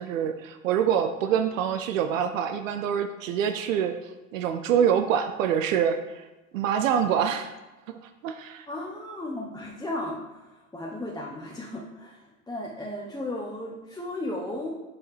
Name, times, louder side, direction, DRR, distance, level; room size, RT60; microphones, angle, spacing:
voice 1, 0.0-4.0 4.3-6.2 6.5-7.5 7.9-8.7, right 8 dB, 70° right, 8 dB, 0.5 m, -25 dB
voice 2, 8.7-14.7, left 1 dB, 10° left, -4 dB, 0.9 m, -35 dB
7.1 x 4.7 x 3.3 m, 1.1 s
hypercardioid pair, 80°, 40 cm